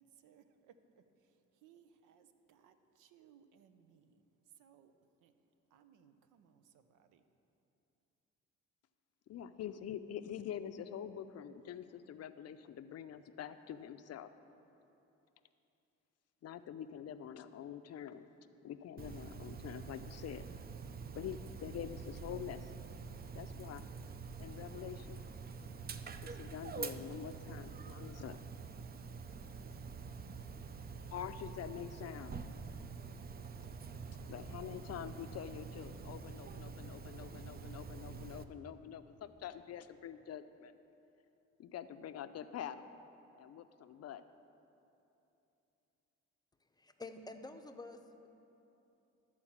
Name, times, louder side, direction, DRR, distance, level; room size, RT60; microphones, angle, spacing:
voice 1, 0.0-4.9 5.2-5.3 5.7-7.2, right 8 dB, 90° right, 10 dB, 0.6 m, -65 dB
voice 2, 9.3-14.3 16.4-18.3 18.6-20.4 21.2-22.8 23.3-23.9 24.4-25.2 26.2-28.4 31.1-32.4 33.6-33.7 34.1-40.7 41.6-42.9 43.3-44.2, left 9 dB, 55° left, 11 dB, 0.5 m, -46 dB
Dog, 19.0-38.4, right 5 dB, 30° right, 0.5 m, -46 dB
voice 3, 46.6-48.3, left 2 dB, 15° left, 6 dB, 0.6 m, -49 dB
12.5 x 4.4 x 7.2 m, 2.9 s
cardioid pair, 90°, 30 cm